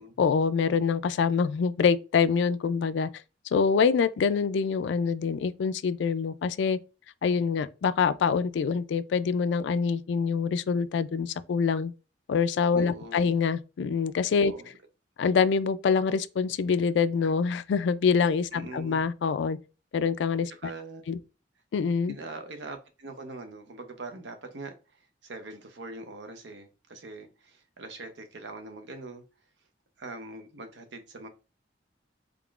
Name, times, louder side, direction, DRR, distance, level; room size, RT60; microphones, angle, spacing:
voice 1, 0.2-3.1 3.5-6.8 7.2-11.9 12.3-14.5 15.2-19.6 19.9-20.5 21.1-21.2 21.7-22.1, left 5 dB, 80° left, 0.3 m, -25 dB
voice 2, 12.8-13.4 14.4-14.7 18.5-19.1 20.5-21.1 22.1-29.2 30.0-31.3, right 2 dB, 80° right, 0.7 m, -42 dB
3.7 x 3.6 x 2.4 m
head